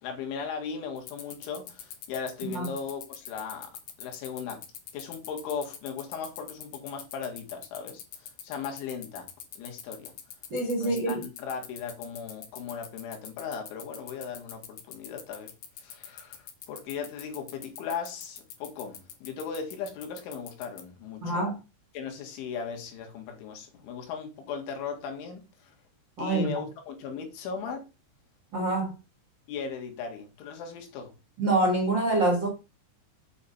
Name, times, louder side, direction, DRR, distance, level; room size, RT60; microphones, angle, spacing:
voice 1, 0.0-3.7 4.0-4.7 4.9-9.3 9.6-10.1 10.8-15.5 15.8-21.4 21.9-25.7 26.2-27.9 29.5-31.2, left 6 dB, 85° left, 4.2 m, -37 dB
sound 1, 1.0-20.8, left 9 dB, 65° left, 2.2 m, -42 dB
voice 2, 10.5-11.2 21.2-21.6 26.2-26.5 28.5-28.9 31.4-32.5, right 2 dB, 80° right, 1.0 m, -26 dB
8.7 x 4.2 x 6.8 m
omnidirectional pair, 5.3 m